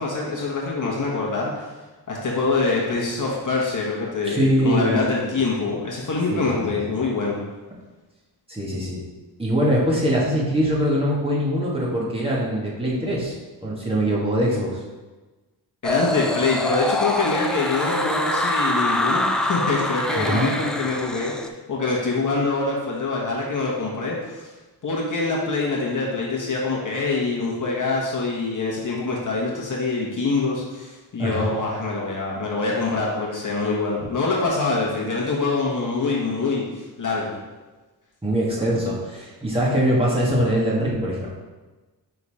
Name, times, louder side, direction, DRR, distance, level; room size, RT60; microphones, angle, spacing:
voice 1, 0.0-1.7 2.1-7.5 15.8-24.5 24.8-37.4, left 3 dB, 45° left, -3 dB, 1.4 m, -25 dB
voice 2, 4.3-5.0 5.2-5.3 6.3-6.5 8.5-9.0 9.4-13.4 13.6-14.8 20.1-20.5 31.2-31.5 38.2-41.3, equal, 15° right, -6 dB, 1.7 m, -22 dB
sound 1, 15.8-21.5, left 1 dB, ahead, 0.3 m, -25 dB
5.5 x 3.8 x 4.9 m, 1.2 s
cardioid pair, 90°, 41 cm